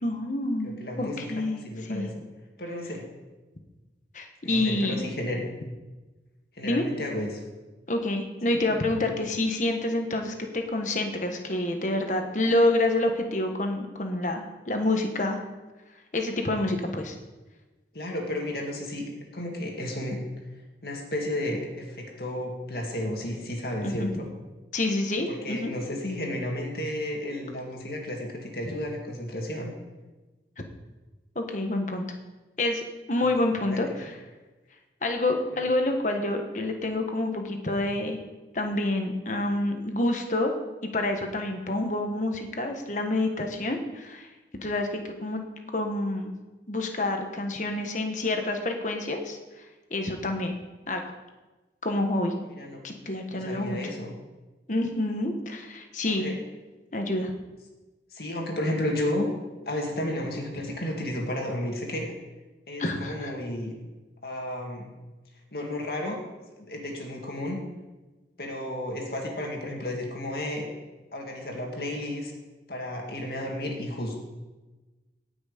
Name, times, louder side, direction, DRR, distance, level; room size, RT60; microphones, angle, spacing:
voice 1, 0.0-2.1 4.1-5.0 6.6-6.8 7.9-15.4 16.1-17.1 23.8-24.1 24.7-25.7 31.3-32.0 32.6-34.2 35.0-38.2 38.5-40.5 40.9-44.3 44.6-46.3 46.7-49.4 49.9-50.6 50.9-51.0 51.8-52.3 52.8-53.8 54.7-56.3 56.9-57.3 62.8-63.3, left 2 dB, 45° left, 4 dB, 1.3 m, -28 dB
voice 2, 0.6-2.1 2.6-3.1 4.4-5.4 6.6-7.4 8.5-8.7 17.9-20.2 20.8-24.3 25.3-29.7 33.1-33.3 33.7-34.0 35.6-35.7 52.5-52.8 53.3-54.1 56.1-56.4 58.1-59.3 59.7-62.1 62.7-63.7 64.2-64.9 65.5-66.2 66.6-67.6 68.4-70.7 71.1-72.3 72.7-74.2, left 1 dB, 60° left, 1 dB, 2.1 m, -32 dB
18.0 x 6.2 x 5.2 m, 1.2 s
head